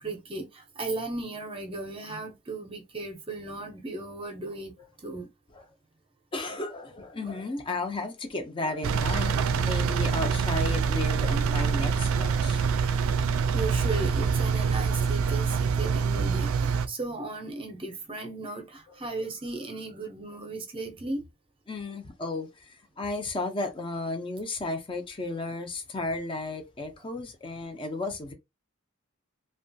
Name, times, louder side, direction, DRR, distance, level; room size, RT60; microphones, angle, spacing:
voice 1, 0.0-4.7 5.0-5.3 7.2-7.3 13.5-21.2, right 2 dB, 25° right, 0.5 m, -36 dB
voice 2, 6.3-12.7 21.7-28.3, left 2 dB, 25° left, 0.4 m, -34 dB
Engine, 8.8-16.9, right 5 dB, 80° right, 0.3 m, -25 dB
2.8 x 2.2 x 2.6 m
head